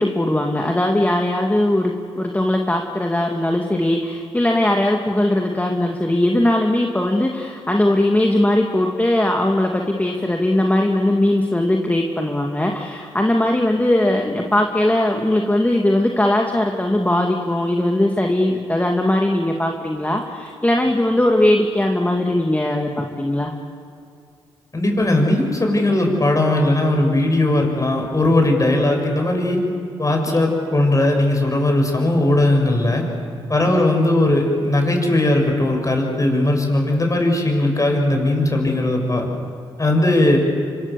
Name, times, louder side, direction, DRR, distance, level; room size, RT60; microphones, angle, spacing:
voice 1, 0.0-23.5 30.3-30.6 33.7-33.8, left 1 dB, 15° left, 2 dB, 2.5 m, -19 dB
voice 2, 24.7-29.6 30.0-33.0 33.5-39.3 39.8-40.4, left 1 dB, 30° left, 2 dB, 7.3 m, -18 dB
25.5 x 25.0 x 7.2 m, 2.5 s
supercardioid pair, 50°, 11 cm